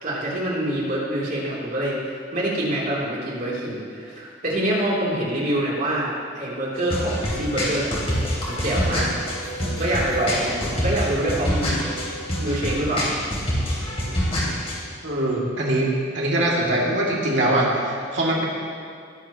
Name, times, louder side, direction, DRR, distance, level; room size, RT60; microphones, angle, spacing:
voice 1, 0.0-2.0 2.3-8.1 8.5-11.8 12.4-13.1, right 1 dB, 45° right, -5 dB, 3.2 m, -26 dB
sound 1, 6.7-14.7, equal, 30° left, 3.1 m, -26 dB
voice 2, 15.0-15.9 16.1-18.5, right 1 dB, 70° right, -4 dB, 2.5 m, -22 dB
20.5 x 11.0 x 3.0 m, 2.2 s
head